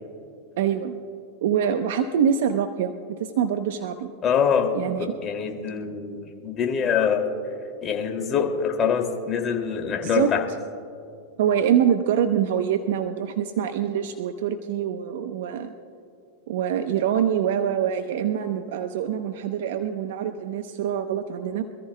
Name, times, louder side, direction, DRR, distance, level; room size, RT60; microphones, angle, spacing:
voice 1, 0.6-1.0 1.4-4.1 4.7-5.1 10.0-10.3 11.4-15.7 16.5-21.6, right 9 dB, 70° right, 8 dB, 0.7 m, -25 dB
voice 2, 4.2-4.7 5.0-7.3 7.8-10.4, left 7 dB, 30° left, 2 dB, 2.4 m, -24 dB
26.0 x 14.0 x 2.2 m, 2.5 s
hypercardioid pair, 115°, 0 cm